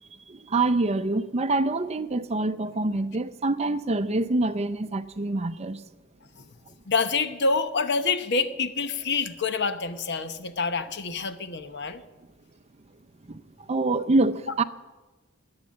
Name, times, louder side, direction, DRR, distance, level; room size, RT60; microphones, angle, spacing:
voice 1, 0.3-5.8 13.3-14.6, right 2 dB, 30° right, 0.6 m, -26 dB
voice 2, 6.9-12.0, left 4 dB, 55° left, 1.0 m, -27 dB
20.5 x 8.8 x 7.5 m
head